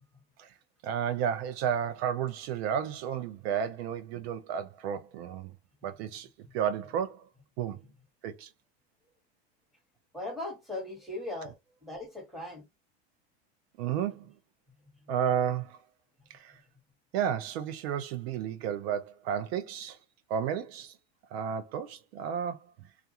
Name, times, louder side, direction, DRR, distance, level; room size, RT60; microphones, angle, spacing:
voice 1, 0.8-5.5 5.8-6.3 6.5-7.3 7.6-7.8 8.2-8.5 13.8-14.2 15.1-15.8 16.3-16.6 17.1-20.0 20.3-21.0 21.3-22.7, right 8 dB, 70° right, 0.5 m, -32 dB
voice 2, 10.1-12.7, left 2 dB, ahead, 1.2 m, -39 dB
2.4 x 2.2 x 2.7 m
supercardioid pair, 140°, 32 cm